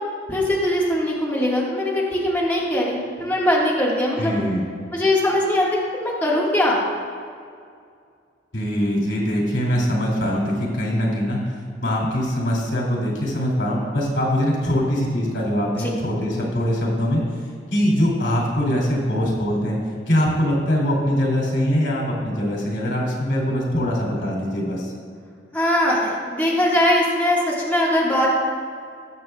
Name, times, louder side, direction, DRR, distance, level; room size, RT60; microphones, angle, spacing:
voice 1, 0.3-4.3 4.9-5.7 5.9-6.8 15.8-15.9 25.5-28.3, left 1 dB, 10° left, -6 dB, 1.5 m, -21 dB
voice 2, 4.1-4.6 8.5-11.4 11.8-17.2 17.7-19.8 20.1-24.9, equal, 85° left, -3 dB, 2.6 m, -22 dB
19.5 x 6.7 x 2.3 m, 2.2 s
head